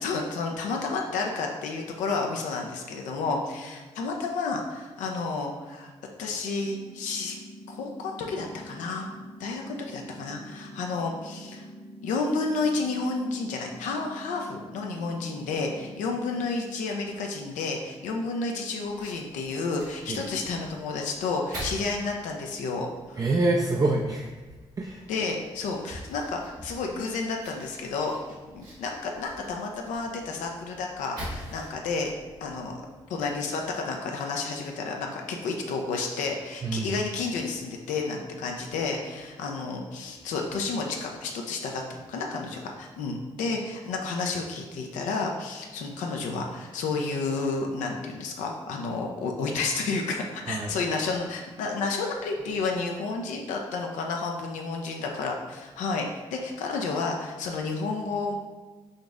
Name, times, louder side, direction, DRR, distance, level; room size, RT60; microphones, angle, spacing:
voice 1, 0.0-5.9 6.2-7.4 7.7-9.1 9.4-11.6 12.0-23.2 25.1-28.1 28.5-32.1 32.4-32.8 33.1-58.3, left 4 dB, 80° left, 2 dB, 0.4 m, -31 dB
sound 1, 6.6-16.6, equal, 35° left, 0.8 m, -45 dB
Fire, 18.8-33.4, equal, 85° right, 1.4 m, -45 dB
voice 2, 23.2-24.3 24.8-25.1 36.6-36.9 50.5-50.8, right 2 dB, 30° right, 1 dB, 0.4 m, -26 dB
3.9 x 2.5 x 3.4 m, 1.3 s
supercardioid pair, 45°, 13 cm